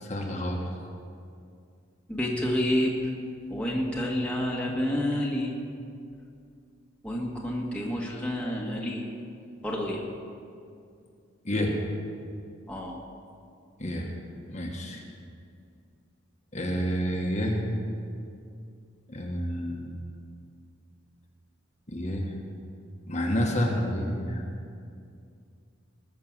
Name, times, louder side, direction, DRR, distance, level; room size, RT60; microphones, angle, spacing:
voice 1, 0.0-0.6 11.4-11.8 13.8-14.1 14.5-15.0 16.5-17.7 19.1-19.9 21.9-22.3 23.1-24.4, equal, 35° left, 0 dB, 1.4 m, -29 dB
voice 2, 2.1-2.9 3.5-5.5 7.0-9.0 9.6-10.0 12.7-13.0, left 1 dB, 5° left, -3 dB, 1.5 m, -29 dB
20.0 x 6.7 x 7.3 m, 2.4 s
head